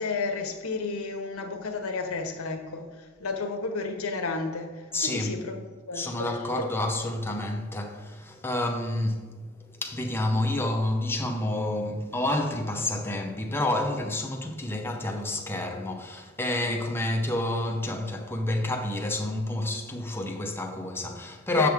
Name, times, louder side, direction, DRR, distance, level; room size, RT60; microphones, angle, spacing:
voice 1, 0.0-2.9 3.2-5.5 5.9-6.3 6.5-6.6 21.6-21.7, left 4 dB, 85° left, 1.0 m, -31 dB
voice 2, 4.9-5.4 5.9-21.7, left 1 dB, 10° left, 0.7 m, -29 dB
7.4 x 6.2 x 3.5 m
head